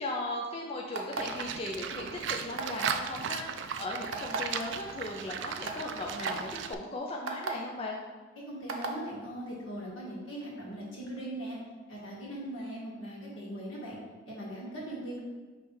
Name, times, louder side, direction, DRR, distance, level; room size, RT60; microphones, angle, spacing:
voice 1, 0.0-8.0, left 2 dB, 30° left, -1 dB, 0.5 m, -37 dB
sound 1, 0.9-1.4 2.6-3.0 4.1-4.4 5.1-5.2 5.6-5.8 6.2-6.3 7.3-7.5 8.7-8.9, right 4 dB, 85° right, 0.7 m, -34 dB
Livestock farm animals working animals, 1.2-6.7, right 7 dB, 60° right, 0.3 m, -37 dB
voice 2, 8.4-11.6 11.9-14.0 14.3-15.2, right 1 dB, 75° left, -5 dB, 1.8 m, -40 dB
5.4 x 3.3 x 5.4 m, 1.3 s
head